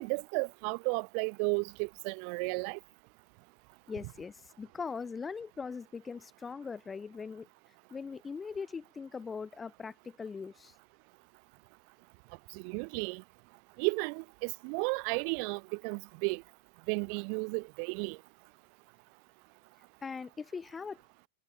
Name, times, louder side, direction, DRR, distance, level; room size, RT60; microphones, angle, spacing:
voice 1, 0.0-2.8 12.5-13.2 13.8-16.4 16.9-18.2, right 40 dB or more, 45° right, 0.5 m, -33 dB
voice 2, 3.9-7.5 7.9-10.7 20.0-21.0, left 5 dB, 15° left, 3.9 m, -41 dB
figure-of-eight pair, 90°, 0 cm